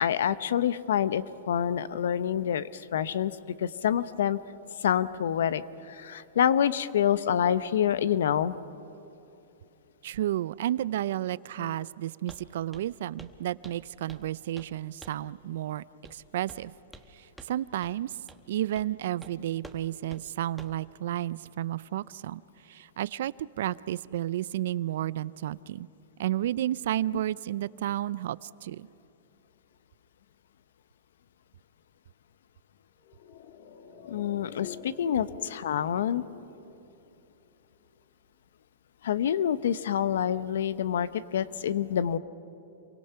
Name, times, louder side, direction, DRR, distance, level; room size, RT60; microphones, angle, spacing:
voice 1, 0.0-4.4 4.8-8.6 11.6-11.9 34.1-36.2 39.0-42.2, left 9 dB, 80° left, 15 dB, 0.8 m, -27 dB
voice 2, 10.0-15.8 16.1-16.7 17.1-18.2 18.5-22.4 22.7-25.9 26.2-28.9, right 13 dB, 65° right, 19 dB, 0.5 m, -32 dB
Walk footsteps, 12.3-12.5 12.7-12.9 13.2-13.4 13.6-14.3 14.6-14.7 15.0-15.3 16.0-16.2 16.5-17.1 17.4-17.5 17.8-17.9 18.3-18.4 18.8-18.9 19.2-19.3 19.6-19.8 20.1-20.2 20.6-20.8, right 2 dB, 5° right, 1.2 m, -49 dB
sound 1, 33.0-37.6 37.8-37.9, left 7 dB, 60° left, 2.6 m, -48 dB
27.5 x 23.5 x 5.7 m, 2.9 s
hypercardioid pair, 145°, 0 cm